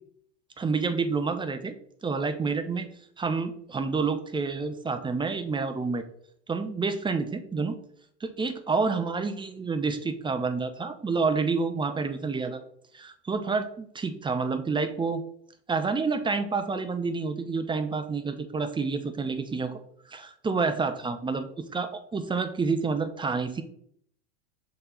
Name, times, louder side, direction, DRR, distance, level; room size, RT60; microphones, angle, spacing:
voice 1, 0.6-2.9 3.2-6.0 6.5-7.8 8.2-12.6 12.9-15.2 15.7-19.8 20.1-23.6, right 4 dB, 15° right, 8 dB, 0.7 m, -29 dB
5.7 x 4.2 x 3.9 m, 0.65 s
hypercardioid pair, 90°, 37 cm